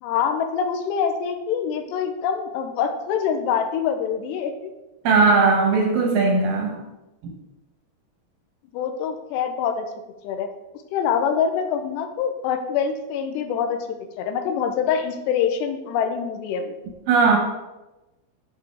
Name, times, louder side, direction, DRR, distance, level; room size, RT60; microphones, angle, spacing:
voice 1, 0.0-4.7 8.7-9.9 10.2-10.5 10.9-13.8 14.2-16.8, left 7 dB, 90° left, 6 dB, 2.9 m, -25 dB
voice 2, 5.0-6.8 17.1-17.4, right 4 dB, 70° right, 1 dB, 2.3 m, -18 dB
8.7 x 6.0 x 3.4 m, 1.0 s
omnidirectional pair, 4.8 m